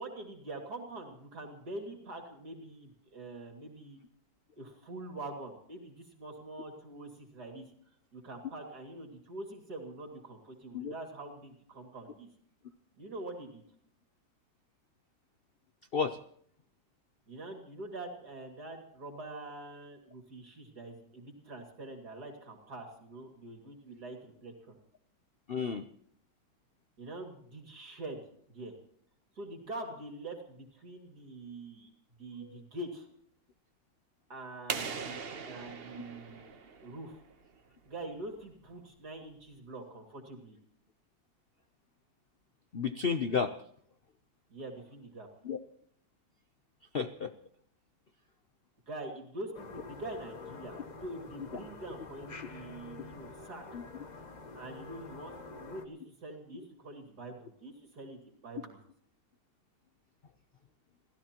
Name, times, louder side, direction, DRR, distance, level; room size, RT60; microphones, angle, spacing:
voice 1, 0.0-4.0 4.6-7.7 8.1-12.3 13.0-13.6 17.3-24.8 27.0-28.2 28.5-28.7 29.3-31.9 32.2-33.1 34.3-35.2 35.4-37.2 37.8-40.6 44.5-45.3 48.9-53.6 54.5-58.8, right 2 dB, 55° right, 3 dB, 2.9 m, -45 dB
voice 2, 25.5-25.8 32.4-32.6 42.7-43.5 45.4-45.6 46.9-47.3 53.7-53.8, left 6 dB, 80° left, 9 dB, 0.5 m, -32 dB
sound 1, 34.7-37.3, right 5 dB, 40° right, 1.0 m, -40 dB
sound 2, 49.5-55.9, left 3 dB, 30° left, 0.9 m, -47 dB
28.5 x 16.0 x 3.0 m, 0.64 s
omnidirectional pair, 2.1 m